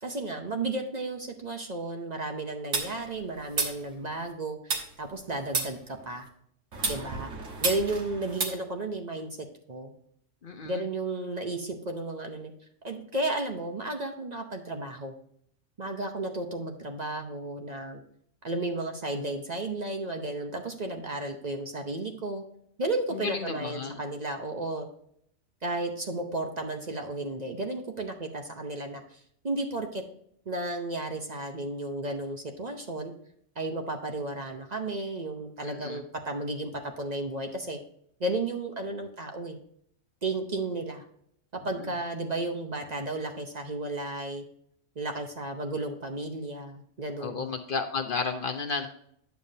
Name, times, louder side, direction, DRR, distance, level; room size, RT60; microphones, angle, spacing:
voice 1, 0.0-6.3 6.9-7.3 7.6-9.9 10.6-12.5 12.8-15.1 15.8-18.0 18.4-22.4 22.8-24.9 25.6-30.0 30.5-33.1 33.6-37.8 38.2-39.6 40.2-41.0 41.5-44.4 45.0-47.5, right 2 dB, 40° right, 4 dB, 0.8 m, -33 dB
sound 1, 2.7-4.3 4.7-6.3 6.7-8.4, right 4 dB, 80° right, 1.6 m, -32 dB
voice 2, 10.4-10.8 23.2-24.0 35.6-36.0 41.8-41.9 47.2-48.9, left 4 dB, 55° left, 6 dB, 0.7 m, -32 dB
9.2 x 7.0 x 2.7 m, 0.68 s
omnidirectional pair, 1.3 m